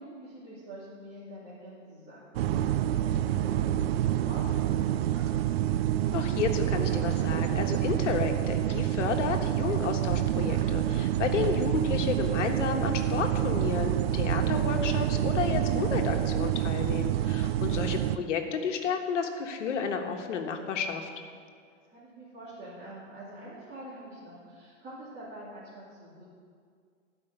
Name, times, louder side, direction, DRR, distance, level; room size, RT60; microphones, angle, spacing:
voice 1, 0.0-3.7 3.9-5.2 17.3-18.0 21.6-26.2, right 1 dB, 25° right, -11 dB, 2.7 m, -46 dB
sound 1, 2.3-18.2, right 12 dB, 55° right, 0.5 m, -27 dB
voice 2, 6.1-21.1, left 6 dB, 75° left, 4 dB, 1.4 m, -31 dB
12.5 x 5.5 x 6.6 m, 2.1 s
hypercardioid pair, 135°, 37 cm